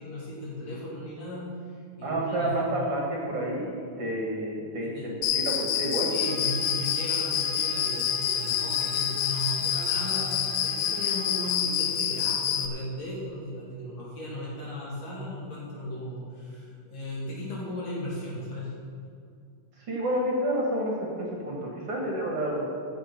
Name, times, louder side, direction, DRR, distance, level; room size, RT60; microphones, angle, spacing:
voice 1, 0.0-1.4 1.7-2.7 4.8-5.1 6.1-18.7, left 1 dB, 55° left, -7 dB, 4.1 m, -36 dB
voice 2, 2.0-6.1 19.8-22.7, right 1 dB, 50° right, -2 dB, 2.4 m, -29 dB
Cricket, 5.2-12.7, left 9 dB, 75° left, 1.9 m, -27 dB
Trumpet, 6.2-11.5, right 2 dB, 5° left, 1.7 m, -46 dB
13.5 x 6.8 x 5.9 m, 2.4 s
omnidirectional pair, 3.6 m